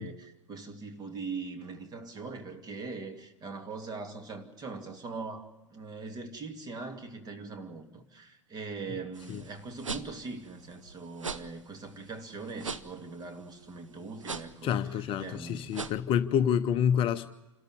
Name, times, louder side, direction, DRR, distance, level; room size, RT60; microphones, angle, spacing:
voice 1, 0.0-15.9, right 4 dB, 25° right, 6 dB, 2.5 m, -41 dB
sound 1, 9.1-16.0, right 4 dB, 80° right, 1.0 m, -41 dB
voice 2, 14.6-17.3, left 8 dB, 35° left, 10 dB, 0.8 m, -28 dB
27.5 x 13.5 x 9.5 m, 1.0 s
figure-of-eight pair, 90°, 16 cm